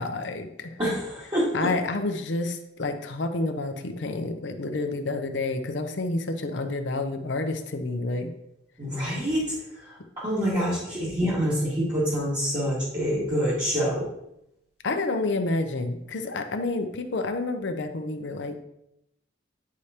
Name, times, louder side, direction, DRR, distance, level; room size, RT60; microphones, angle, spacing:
voice 1, 0.0-0.8 1.5-8.3 14.8-18.6, left 2 dB, 75° left, 7 dB, 0.6 m, -29 dB
voice 2, 0.8-1.7 8.8-9.4 9.9-14.0, equal, 25° right, -10 dB, 1.9 m, -26 dB
9.3 x 5.0 x 2.8 m, 0.81 s
head